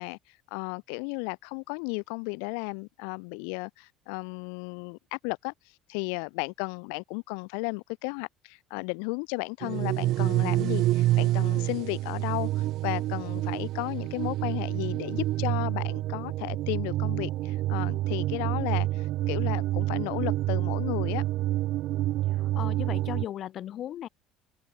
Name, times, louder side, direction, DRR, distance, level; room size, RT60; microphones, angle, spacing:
voice 1, 0.0-21.2, left 40 dB or more, 85° left, 2.0 m, -34 dB
sound 1, 9.6-23.2, right 15 dB, 65° right, 0.8 m, -28 dB
voice 2, 22.4-24.1, left 11 dB, 55° left, 6.2 m, -36 dB
supercardioid pair, 100°, 0 cm